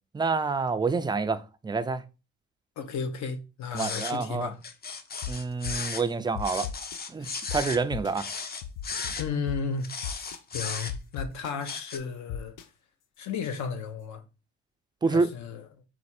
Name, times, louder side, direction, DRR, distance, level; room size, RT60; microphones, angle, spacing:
voice 1, 0.1-2.0 3.7-4.5 5.3-6.7 7.1-8.3 15.0-15.3, right 4 dB, 15° right, 0.3 m, -28 dB
voice 2, 2.8-4.6 7.2-7.5 9.2-12.6 13.2-14.2 15.1-15.6, left 5 dB, 70° left, 0.8 m, -34 dB
sound 1, 3.8-4.2 4.6-6.1 6.4-7.8 8.1-9.2 9.8-11.2 11.6-12.0, left 5 dB, 30° left, 0.6 m, -35 dB
sound 2, 5.2-5.3 5.6-5.9 6.4-7.0 7.5-7.6 7.9-8.1 8.6-9.6 10.0-10.4 10.9-11.5 12.3-12.6, left 9 dB, 90° left, 0.5 m, -35 dB
4.3 x 2.4 x 4.2 m
cardioid pair, 90°, 30 cm